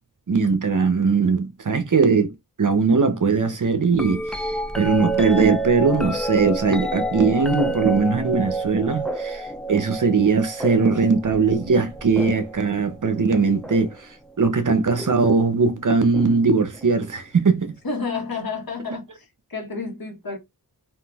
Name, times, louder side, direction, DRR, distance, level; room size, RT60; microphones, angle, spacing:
voice 1, 0.3-2.3 2.6-4.5 4.8-14.0 14.4-17.7, right 4 dB, 50° right, 0.7 m, -20 dB
sound 1, 3.9-14.0 15.0-15.4 16.1-17.1 18.9-19.0, right 1 dB, ahead, 0.4 m, -30 dB
voice 2, 17.8-19.2 19.5-20.4, left 4 dB, 60° left, 1.2 m, -30 dB
3.6 x 2.6 x 2.4 m
wide cardioid pair, 60°, 40 cm